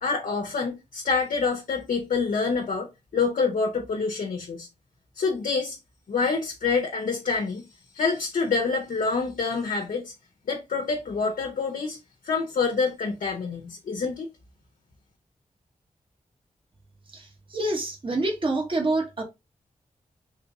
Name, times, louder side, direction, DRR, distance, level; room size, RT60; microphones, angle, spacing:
voice 1, 0.0-2.9 3.1-4.7 5.2-5.8 6.1-7.7 7.9-10.1 10.5-12.0 12.2-14.3, left 4 dB, 75° left, 0.9 m, -26 dB
voice 2, 17.1-19.2, right 2 dB, 40° right, 1.2 m, -27 dB
3.3 x 2.9 x 3.4 m
cardioid pair, 45°, 14 cm